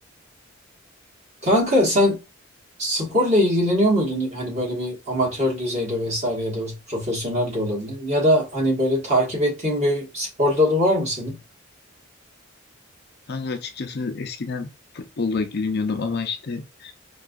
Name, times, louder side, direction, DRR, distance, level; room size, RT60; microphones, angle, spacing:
voice 1, 1.4-2.2 2.8-11.4, equal, 35° right, 1.5 m, -22 dB
voice 2, 13.3-14.7 14.9-16.9, left 4 dB, 50° left, 0.5 m, -28 dB
4.6 x 2.3 x 2.4 m
head